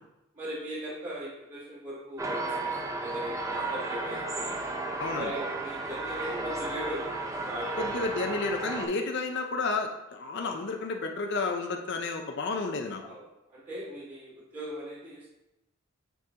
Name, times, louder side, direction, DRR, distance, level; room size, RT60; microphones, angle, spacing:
voice 1, 0.3-4.5 5.2-7.2 7.5-8.1 10.3-10.6 13.0-13.3 13.5-15.3, equal, 40° right, -11 dB, 1.7 m, -39 dB
sound 1, 2.2-8.9, right 2 dB, 15° right, 0.5 m, -33 dB
voice 2, 5.0-5.3 7.8-13.2, left 3 dB, 55° left, 3 dB, 0.5 m, -31 dB
9.2 x 3.8 x 2.8 m, 0.94 s
head